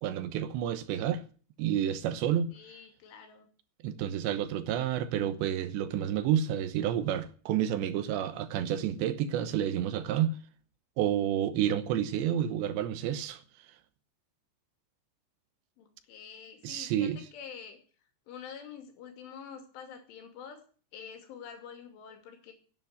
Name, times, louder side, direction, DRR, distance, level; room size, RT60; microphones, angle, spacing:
voice 1, 0.0-1.2 1.6-2.5 3.8-10.4 11.0-13.4 16.6-17.2, right 10 dB, 75° right, 3.1 m, -30 dB
voice 2, 2.5-3.5 15.8-17.8 18.3-20.6 20.9-22.5, left 7 dB, 85° left, 5.1 m, -47 dB
11.0 x 9.3 x 9.5 m
omnidirectional pair, 5.4 m